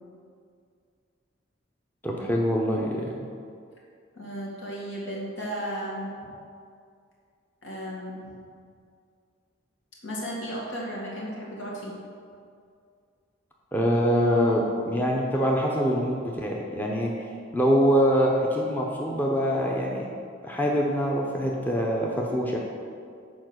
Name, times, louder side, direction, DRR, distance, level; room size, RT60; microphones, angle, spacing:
voice 1, 2.0-3.2 13.7-17.1 17.5-20.1 20.4-22.6, equal, 10° left, -2 dB, 0.7 m, -24 dB
voice 2, 4.2-6.2 7.6-8.3 10.0-12.0, equal, 75° left, -4 dB, 2.1 m, -34 dB
7.2 x 4.9 x 6.2 m, 2.3 s
head